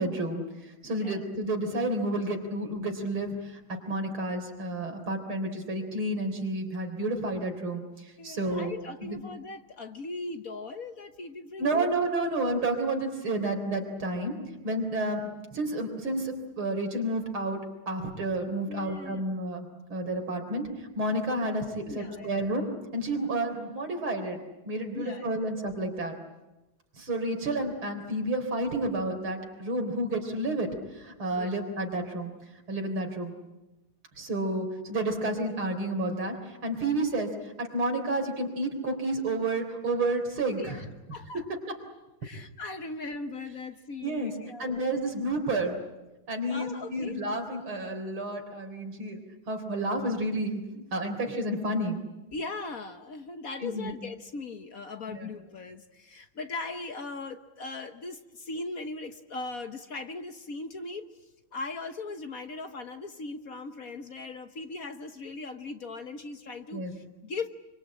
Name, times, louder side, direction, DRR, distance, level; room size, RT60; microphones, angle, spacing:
voice 1, 0.0-3.6 3.9-8.7 9.1-9.2 11.6-14.4 14.6-15.2 15.5-17.6 17.9-24.4 24.6-26.1 27.0-30.7 30.9-32.3 32.7-33.3 34.2-40.8 44.0-44.3 44.6-45.8 46.3-52.0 53.6-53.9 55.1-55.3 66.7-66.9, right 1 dB, 80° right, 4 dB, 4.5 m, -30 dB
voice 2, 0.8-1.3 8.2-11.9 18.7-19.4 21.8-22.5 24.9-25.3 31.4-31.5 40.6-40.8 41.1-41.4 42.2-44.9 46.5-47.1 52.3-61.1 61.5-67.5, left 3 dB, 50° left, 8 dB, 1.4 m, -39 dB
26.5 x 24.5 x 8.7 m, 1.0 s
omnidirectional pair, 2.2 m